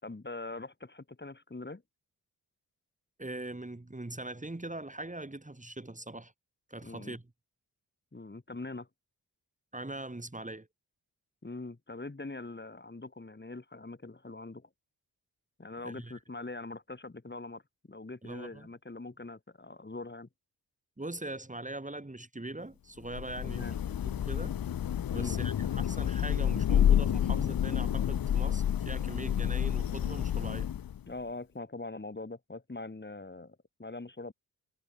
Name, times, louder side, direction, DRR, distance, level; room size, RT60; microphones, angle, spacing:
voice 1, 0.0-1.8 6.8-7.2 8.1-8.9 11.4-14.7 15.6-17.6 17.9-20.3 23.4-23.8 25.1-25.3 31.1-34.3, left 2 dB, 25° left, 7.0 m, -42 dB
voice 2, 3.2-6.3 6.7-7.2 9.7-10.7 15.8-16.1 18.2-18.7 21.0-23.8 24.0-24.6 25.1-30.7, right 2 dB, 20° right, 6.4 m, -41 dB
Thunder / Rain, 23.1-31.1, left 10 dB, 60° left, 1.0 m, -29 dB
cardioid pair, 55°, 40 cm